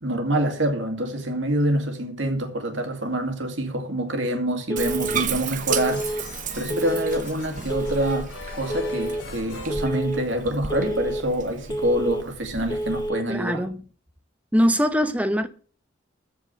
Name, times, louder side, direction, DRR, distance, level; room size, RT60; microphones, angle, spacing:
voice 1, 0.0-13.6, right 1 dB, 75° right, 2.4 m, -26 dB
Telephone, 4.7-5.2 5.7-6.2 6.7-7.2 7.7-8.2 8.7-9.2 9.7-10.2 10.7-11.2 11.7-12.2 12.7-13.2, right 1 dB, 20° left, 0.9 m, -29 dB
Bathtub (filling or washing), 4.8-13.1, right 6 dB, 40° right, 1.0 m, -34 dB
sound 1, 5.3-10.7, left 3 dB, 70° left, 3.1 m, -42 dB
voice 2, 13.3-13.8 14.5-15.5, equal, 5° right, 0.8 m, -22 dB
14.0 x 4.9 x 7.5 m
head